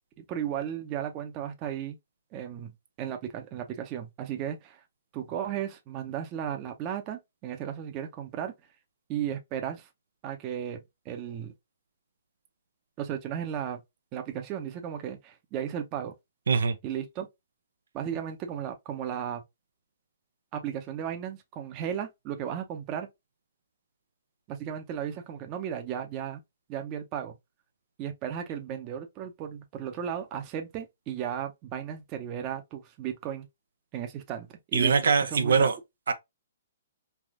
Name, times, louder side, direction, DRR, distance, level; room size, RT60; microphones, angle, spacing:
voice 1, 0.3-2.0 2.3-2.7 3.0-4.8 5.1-8.5 9.1-9.9 10.2-10.8 11.1-11.5 13.0-13.8 14.1-16.1 16.8-17.3 17.9-19.4 20.5-23.1 24.5-26.4 26.7-27.4 28.0-33.5 33.9-35.7, right 9 dB, 30° right, 0.6 m, -35 dB
voice 2, 34.7-35.8 36.1-36.2, right 5 dB, 85° right, 0.5 m, -22 dB
3.4 x 2.6 x 2.4 m
hypercardioid pair, 155°, 0 cm